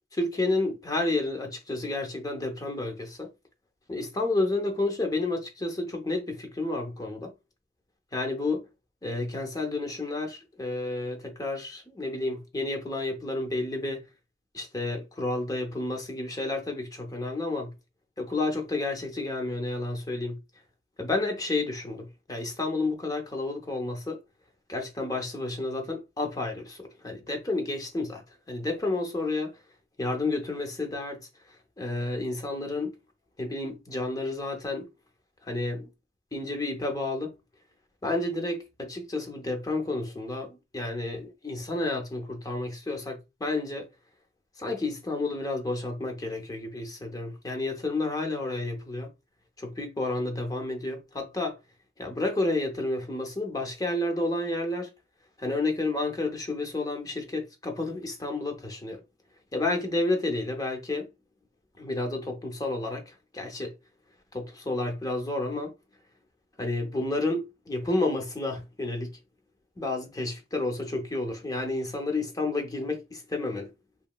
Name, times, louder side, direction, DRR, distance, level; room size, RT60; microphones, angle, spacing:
voice 1, 0.1-3.3 3.9-7.3 8.1-8.7 9.0-14.0 14.5-17.7 18.2-20.4 21.0-24.2 24.7-29.6 30.0-31.3 31.8-33.0 33.4-34.9 35.4-35.9 36.3-37.3 38.0-43.9 44.6-49.1 49.6-51.6 52.0-54.9 55.4-59.0 59.5-61.1 61.8-63.8 64.3-65.7 66.6-69.2 69.8-73.7, left 2 dB, 20° left, 0.6 m, -31 dB
2.9 x 2.5 x 2.2 m
head